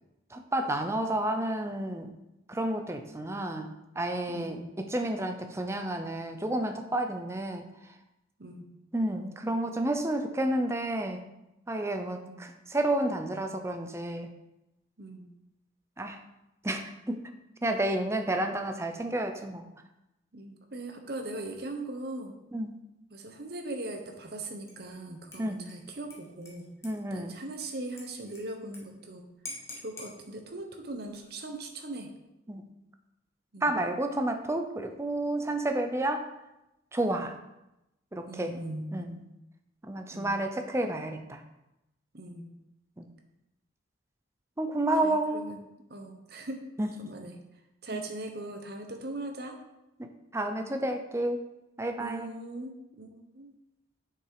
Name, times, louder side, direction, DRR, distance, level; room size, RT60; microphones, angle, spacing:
voice 1, 0.3-2.1 2.5-7.6 8.9-11.2 11.7-14.3 16.0-16.2 16.6-17.2 17.6-19.7 22.5-22.8 25.4-25.6 26.8-27.3 32.5-32.6 33.6-36.3 36.9-37.3 38.1-38.6 38.9-39.1 39.8-41.4 43.0-43.1 44.6-45.5 46.8-46.9 47.9-48.0 50.0-51.4 51.8-52.3, right 1 dB, 15° right, 6 dB, 0.6 m, -30 dB
voice 2, 4.3-4.6 8.4-8.7 12.3-12.4 15.0-15.3 20.3-22.3 23.1-26.7 27.1-29.2 29.8-32.1 33.5-33.7 38.3-39.3 40.1-40.3 42.1-42.5 45.0-45.6 45.9-46.6 47.0-47.4 47.8-49.6 52.0-53.5, right 2 dB, 60° right, 4 dB, 1.1 m, -40 dB
Dishes pots and pans / Liquid, 24.7-25.0 25.3-28.8 29.1-29.2 29.5-30.1 31.0-31.5, left 2 dB, 15° left, 1.5 m, -47 dB
7.1 x 5.9 x 4.9 m, 0.92 s
head